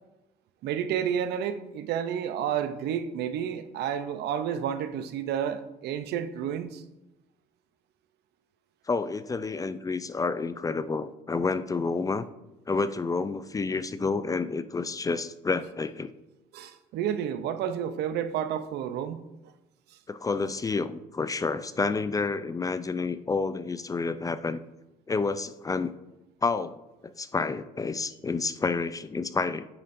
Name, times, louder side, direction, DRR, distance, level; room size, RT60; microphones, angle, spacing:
voice 1, 0.6-6.8 16.5-19.2, right 9 dB, 75° right, 0.6 m, -30 dB
voice 2, 8.9-12.2 12.7-16.1 20.1-24.6 25.1-25.9 26.4-29.6, left 4 dB, 20° left, 0.4 m, -29 dB
9.0 x 7.4 x 2.6 m
supercardioid pair, 85°, 17 cm